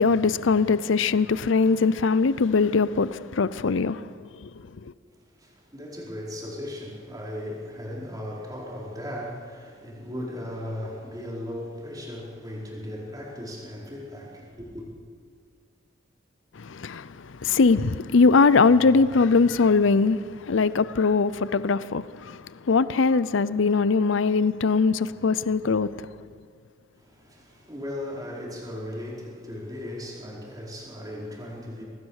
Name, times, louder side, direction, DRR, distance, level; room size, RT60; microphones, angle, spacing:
voice 1, 0.0-4.1 4.4-4.5 16.6-26.1, left 4 dB, 75° left, 0.5 m, -21 dB
voice 2, 5.0-14.9 26.9-31.8, left 1 dB, 20° right, 4.7 m, -37 dB
24.5 x 19.0 x 6.5 m
head